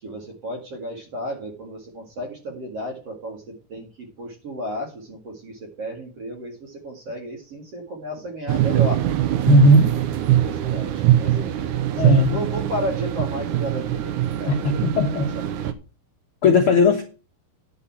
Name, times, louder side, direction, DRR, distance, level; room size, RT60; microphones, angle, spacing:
voice 1, 0.0-9.0 10.4-15.7, equal, 45° right, 1 dB, 2.7 m, -33 dB
sound 1, 8.5-15.7, right 12 dB, 80° right, 1.8 m, -22 dB
voice 2, 9.5-9.9 12.0-12.4 14.5-15.3 16.4-17.0, left 1 dB, 85° left, 3 dB, 1.2 m, -16 dB
10.0 x 5.6 x 7.2 m, 0.34 s
omnidirectional pair, 4.6 m